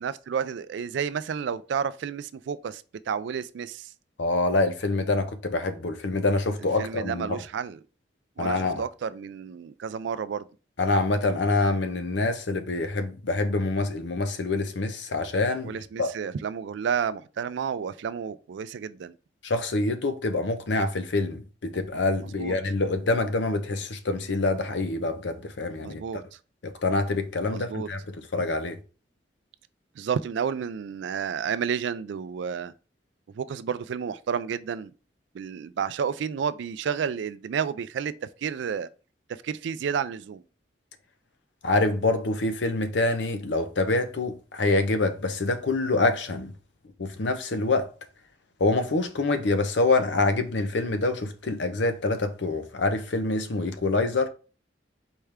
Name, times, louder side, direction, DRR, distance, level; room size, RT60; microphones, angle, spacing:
voice 1, 0.0-3.9 6.8-7.8 8.4-10.5 15.6-19.2 22.2-22.6 25.8-26.4 27.5-27.9 30.0-32.7 33.3-34.9 35.3-38.9 39.3-40.4, right 7 dB, 75° right, 0.3 m, -31 dB
voice 2, 4.2-7.4 8.4-8.8 10.8-16.1 19.4-26.0 26.6-28.0 28.3-28.8 41.6-46.5 47.0-47.9 48.6-54.3, left 2 dB, 75° left, 0.7 m, -26 dB
4.4 x 3.3 x 3.5 m
head